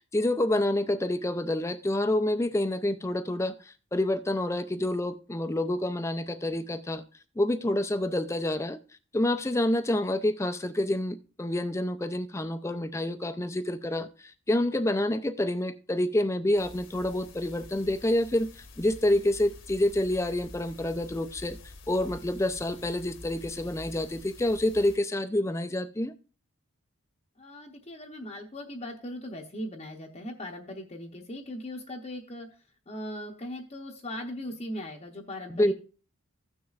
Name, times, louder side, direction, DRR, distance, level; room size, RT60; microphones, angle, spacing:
voice 1, 0.1-7.0 7.4-8.8 9.1-21.6 21.9-26.1 35.5-35.7, left 1 dB, 15° left, 0.4 m, -28 dB
sound 1, 16.6-25.0, left 2 dB, 55° left, 1.0 m, -48 dB
voice 2, 27.4-32.5 32.9-35.7, left 1 dB, 30° left, 0.7 m, -39 dB
15.5 x 6.3 x 2.4 m
head